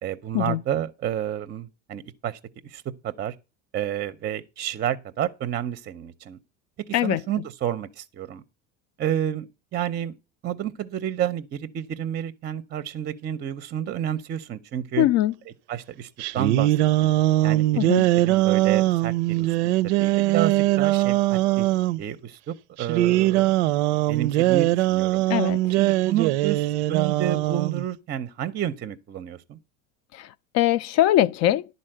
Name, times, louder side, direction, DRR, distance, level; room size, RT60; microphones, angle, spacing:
voice 1, 0.0-3.4 3.7-6.4 6.9-8.4 9.0-10.2 10.4-15.1 15.5-17.1 17.4-17.7 18.0-21.7 22.0-23.5 24.1-25.2 25.7-29.6, right 10 dB, 30° right, 0.6 m, -30 dB
voice 2, 15.0-15.3 17.8-18.0 25.3-25.6 30.1-30.3 30.5-31.7, left 13 dB, 50° left, 0.5 m, -21 dB
sound 1, 16.2-22.0 22.8-27.9, right 16 dB, 80° right, 0.5 m, -21 dB
11.0 x 4.1 x 7.7 m
supercardioid pair, 115°, 34 cm